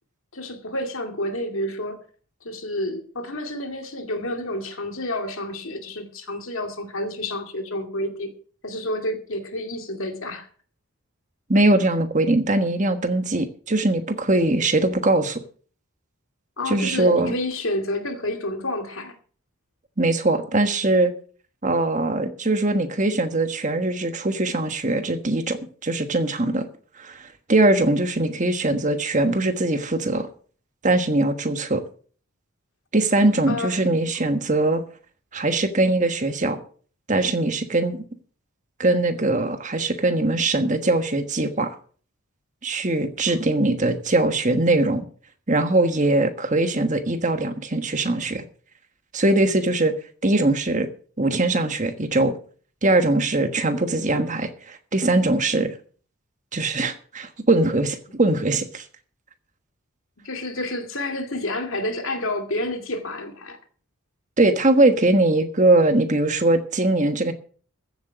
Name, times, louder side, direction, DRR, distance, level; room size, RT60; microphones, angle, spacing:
voice 1, 0.3-2.0 2.4-8.3 8.6-10.5 16.6-19.2 33.5-33.9 34.2-34.5 60.2-63.6, left 1 dB, 65° left, 2.4 m, -29 dB
voice 2, 11.5-15.4 16.7-17.3 20.0-21.1 21.6-26.6 27.0-30.3 30.8-31.8 32.9-34.8 35.3-36.6 37.1-38.0 38.8-41.7 42.6-45.0 45.5-48.4 49.1-49.9 50.2-50.9 51.2-52.4 52.8-55.7 56.5-58.8 64.4-67.3, right 2 dB, 35° right, 1.3 m, -21 dB
15.0 x 7.9 x 6.2 m
head